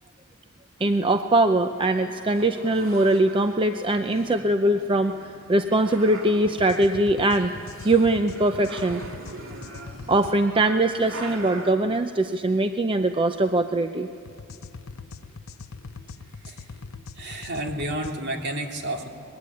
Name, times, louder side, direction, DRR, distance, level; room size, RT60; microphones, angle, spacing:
voice 1, 0.8-7.5 7.8-9.0 10.1-14.1, right 2 dB, 25° right, 8 dB, 0.6 m, -22 dB
sound 1, 0.8-11.7, right 2 dB, 70° right, 2.9 m, -43 dB
sound 2, 6.4-10.4 14.2-18.1, left 4 dB, 75° left, 0.8 m, -41 dB
voice 2, 17.2-19.1, right 1 dB, 55° right, 2 dB, 2.7 m, -30 dB
24.5 x 21.0 x 9.7 m, 2.5 s
head